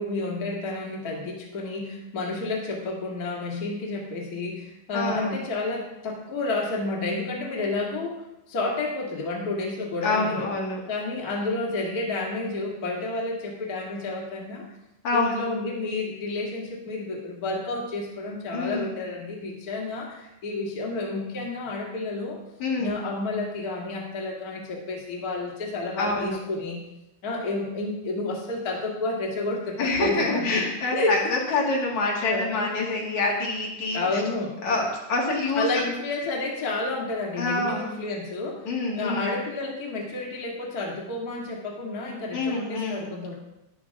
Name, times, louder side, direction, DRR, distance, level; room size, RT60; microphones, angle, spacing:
voice 1, 0.0-10.5 10.9-14.6 15.1-22.4 22.8-26.8 27.2-31.2 32.2-33.2 33.9-34.6 35.5-38.7 38.9-43.3, left 2 dB, 65° left, -3 dB, 0.9 m, -30 dB
voice 2, 4.9-5.4 10.0-10.8 15.0-15.5 18.5-18.9 22.6-22.9 26.0-26.4 29.8-34.2 34.6-35.8 37.4-37.9 38.6-39.3 42.3-43.1, left 3 dB, 45° left, -3 dB, 3.0 m, -26 dB
13.5 x 11.5 x 3.6 m, 0.90 s
omnidirectional pair, 5.6 m